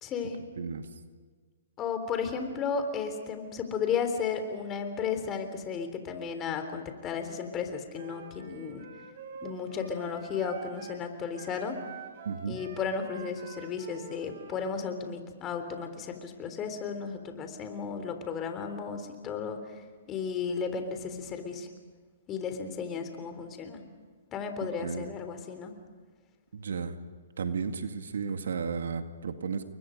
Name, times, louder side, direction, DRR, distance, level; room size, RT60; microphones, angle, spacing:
voice 1, 0.0-0.4 1.8-8.8 9.4-11.8 12.5-19.6 20.1-21.7 22.3-23.8 24.3-25.7, left 6 dB, 25° left, 7 dB, 3.6 m, -34 dB
voice 2, 0.6-0.9 12.3-12.6 24.6-25.1 26.5-27.0 27.4-29.7, right 5 dB, 75° right, 7 dB, 2.1 m, -34 dB
Wind instrument woodwind instrument, 7.9-11.0 11.3-14.7, right 5 dB, 60° right, 4.4 m, -46 dB
30.0 x 23.0 x 5.3 m, 1.5 s
hypercardioid pair, 140°, 0 cm